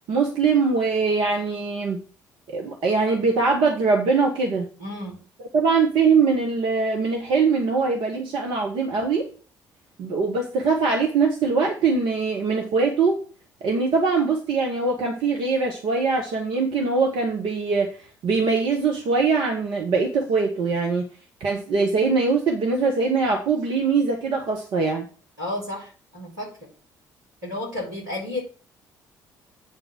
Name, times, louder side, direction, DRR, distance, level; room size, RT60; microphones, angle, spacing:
voice 1, 0.1-2.0 2.5-4.7 5.5-9.3 10.0-13.2 13.6-17.9 18.2-21.1 21.4-25.1, right 4 dB, 55° right, 1 dB, 1.4 m, -22 dB
voice 2, 4.8-5.2 25.4-26.5 27.4-28.4, left 1 dB, 85° right, -6 dB, 3.8 m, -32 dB
8.6 x 3.9 x 6.2 m, 0.39 s
figure-of-eight pair, 45°, 10 cm